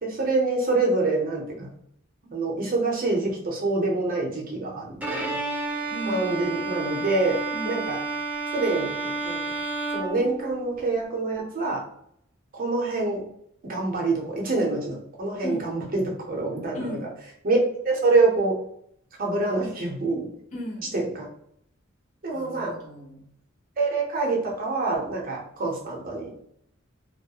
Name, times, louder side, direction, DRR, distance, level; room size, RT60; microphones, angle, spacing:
voice 1, 0.0-1.7 2.2-5.4 6.1-7.4 7.6-8.0 8.5-9.4 9.9-11.8 12.5-13.2 13.7-17.0 17.4-17.6 17.8-18.6 19.2-20.3 20.9-21.3 22.2-22.7 23.8-26.4, right 3 dB, 45° right, -1 dB, 0.7 m, -26 dB
Bowed string instrument, 5.0-10.9, right 3 dB, 5° right, 0.5 m, -31 dB
voice 2, 5.9-6.4 7.5-7.8 15.4-15.7 16.7-17.1 20.5-20.9 22.3-23.3, equal, 40° left, -4 dB, 0.8 m, -36 dB
2.3 x 2.1 x 2.8 m, 0.70 s
head